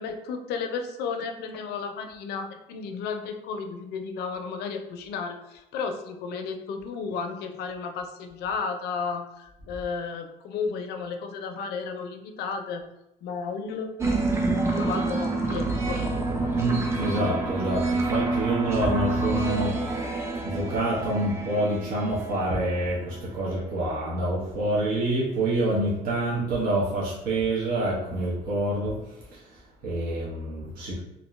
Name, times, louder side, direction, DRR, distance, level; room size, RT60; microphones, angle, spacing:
voice 1, 0.0-12.8 13.2-16.0, left 5 dB, 75° left, 5 dB, 0.4 m, -33 dB
sound 1, 14.0-23.0, right 2 dB, 15° right, 0.4 m, -28 dB
voice 2, 16.5-31.0, right 1 dB, 60° right, -6 dB, 0.8 m, -27 dB
2.5 x 2.1 x 3.0 m, 0.91 s
cardioid pair, 110°, 17 cm